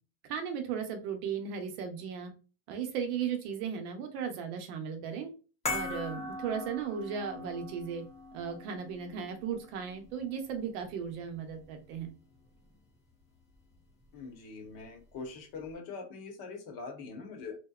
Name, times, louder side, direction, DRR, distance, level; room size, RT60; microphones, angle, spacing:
voice 1, 0.3-2.3 2.7-5.3 5.7-8.0 8.3-12.1, right 7 dB, 60° right, 5 dB, 0.8 m, -36 dB
sound 1, 5.7-12.1 12.3-12.5, left 3 dB, 15° left, 0.7 m, -41 dB
voice 2, 14.1-17.6, left 4 dB, 45° left, 2 dB, 0.9 m, -43 dB
2.7 x 2.1 x 2.3 m, 0.34 s
supercardioid pair, 140°, 49 cm